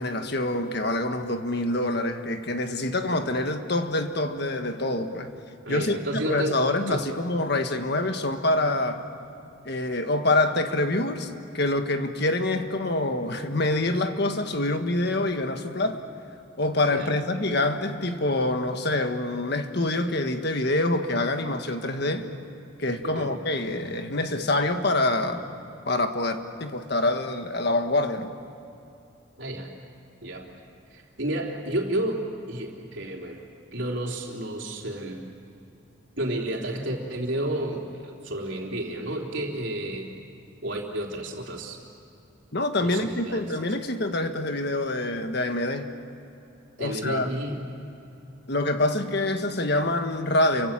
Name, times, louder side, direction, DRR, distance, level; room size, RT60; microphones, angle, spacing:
voice 1, 0.0-5.3 5.7-9.0 9.6-16.0 16.6-22.3 22.8-25.5 25.9-28.3 42.5-45.9 46.8-47.3 48.5-50.7, left 2 dB, 55° left, 7 dB, 1.6 m, -26 dB
voice 2, 5.6-7.0 16.9-17.1 23.0-23.3 29.4-29.7 30.2-30.5 30.9-32.2 32.5-33.4 33.7-35.2 36.2-40.1 40.6-41.8 42.8-43.6 46.8-47.6, right 1 dB, 65° right, 0 dB, 3.8 m, -31 dB
29.5 x 24.5 x 7.6 m, 2.8 s
head